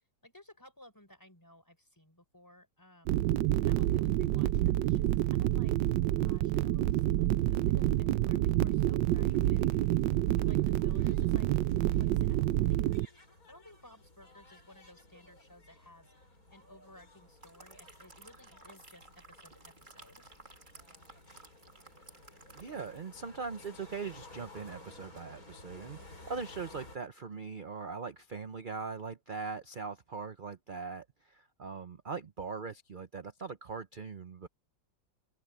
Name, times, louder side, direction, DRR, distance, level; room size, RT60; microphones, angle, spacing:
voice 1, 0.2-3.2 3.6-5.8 6.1-10.0 10.4-11.5 11.9-13.1 13.5-20.3, left 1 dB, 10° left, 4.8 m, -57 dB
sound 1, 3.1-13.0, right 14 dB, 80° right, 1.3 m, -28 dB
sound 2, 9.0-27.0, left 2 dB, 50° left, 6.5 m, -55 dB
sound 3, 17.1-23.1 23.4-23.6, right 3 dB, 25° right, 2.2 m, -56 dB
voice 2, 22.5-34.5, right 5 dB, 50° right, 0.6 m, -41 dB
open air
omnidirectional pair, 2.0 m